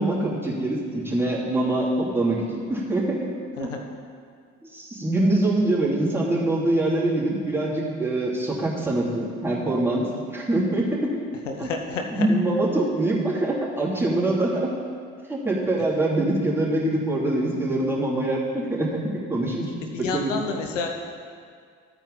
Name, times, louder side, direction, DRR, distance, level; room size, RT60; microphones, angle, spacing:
voice 1, 0.0-3.1 3.6-3.7 4.6-11.1 11.6-11.7 12.1-14.7 15.3-18.9 19.3-19.7 20.0-20.3, right 1 dB, 5° right, -6 dB, 3.1 m, -24 dB
voice 2, 11.4-12.3 19.9-20.9, left 4 dB, 85° left, 3 dB, 0.8 m, -29 dB
13.0 x 8.9 x 4.1 m, 2.1 s
figure-of-eight pair, 45°, 36 cm